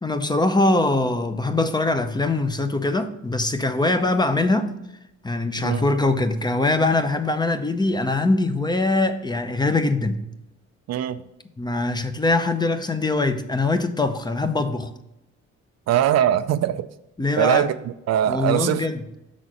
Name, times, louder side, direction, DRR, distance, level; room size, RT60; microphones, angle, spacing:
voice 1, 0.0-4.7 5.2-10.2 11.6-14.9 17.2-17.7 18.3-19.0, left 2 dB, 15° left, 0.6 m, -22 dB
voice 2, 10.9-11.2 15.9-16.9 17.4-17.7 18.1-18.9, right 11 dB, 60° right, 0.4 m, -21 dB
6.1 x 4.1 x 6.1 m
cardioid pair, 90°, 30 cm